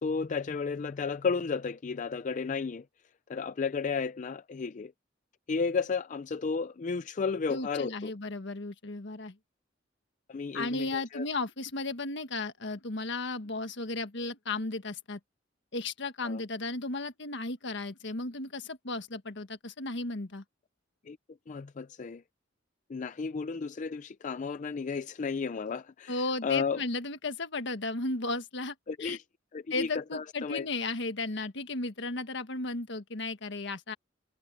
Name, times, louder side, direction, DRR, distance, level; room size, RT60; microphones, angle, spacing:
voice 1, 0.0-2.8 3.3-4.9 5.5-8.1 10.3-11.2 16.2-16.4 21.1-21.2 21.5-22.2 22.9-26.8 28.9-29.2 29.5-30.7, left 5 dB, 40° left, 0.4 m, -33 dB
voice 2, 7.5-9.4 10.5-15.2 15.7-20.4 26.1-28.7 29.0-29.2 29.7-33.9, left 3 dB, 65° left, 1.5 m, -35 dB
head